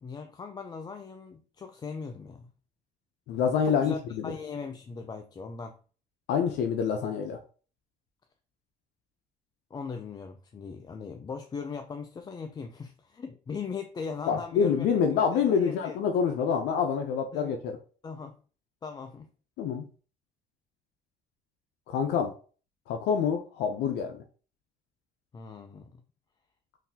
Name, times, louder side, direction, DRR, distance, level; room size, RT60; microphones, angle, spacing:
voice 1, 0.0-2.5 3.6-5.8 9.7-16.0 17.3-17.6 18.0-18.4 18.8-19.3 25.3-26.0, left 5 dB, 25° left, 0.3 m, -39 dB
voice 2, 3.3-4.3 6.3-7.4 14.3-17.8 19.6-19.9 21.9-22.3 22.9-24.2, left 7 dB, 80° left, 0.5 m, -27 dB
3.8 x 2.7 x 2.7 m
cardioid pair, 110°, 17 cm